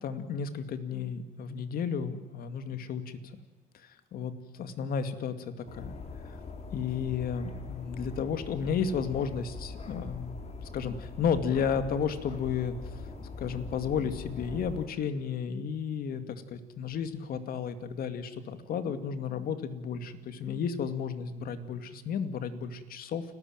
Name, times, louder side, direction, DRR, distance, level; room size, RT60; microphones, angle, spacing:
voice 1, 0.0-3.2 4.1-4.3 4.6-6.0 6.7-10.4 10.7-12.7 13.4-23.2, left 7 dB, 60° left, 10 dB, 2.3 m, -33 dB
sound 1, 5.7-14.9, left 4 dB, 40° left, 4.0 m, -42 dB
29.5 x 14.0 x 9.1 m, 1.2 s
cardioid pair, 110°, 17 cm